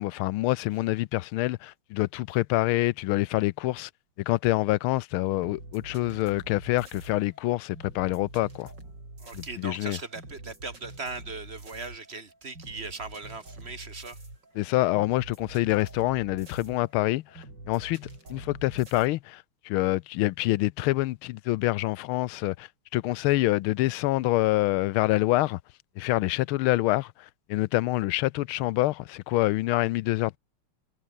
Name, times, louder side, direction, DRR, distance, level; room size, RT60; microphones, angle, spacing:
voice 1, 0.0-3.9 4.2-8.7 9.3-10.0 14.5-25.6 26.0-30.4, left 17 dB, 80° left, 1.4 m, -26 dB
sound 1, 5.4-19.1, right 2 dB, 50° right, 8.5 m, -46 dB
voice 2, 9.2-14.2, right 3 dB, 30° right, 1.7 m, -39 dB
omnidirectional pair, 2.4 m